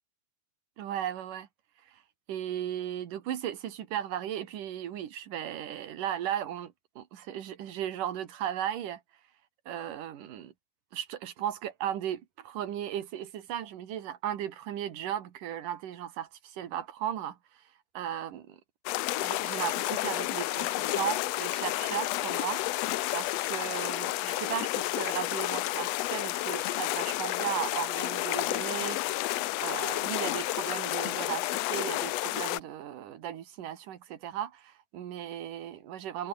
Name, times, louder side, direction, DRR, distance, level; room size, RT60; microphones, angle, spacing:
voice 1, 0.8-1.5 1.9-2.0 2.3-9.0 9.7-10.5 10.9-17.4 17.9-18.6 19.2-22.6 23.1-36.3, right 10 dB, 85° right, 3.4 m, -36 dB
sound 1, 18.9-32.6, left 17 dB, 80° left, 1.5 m, -31 dB
omnidirectional pair, 3.6 m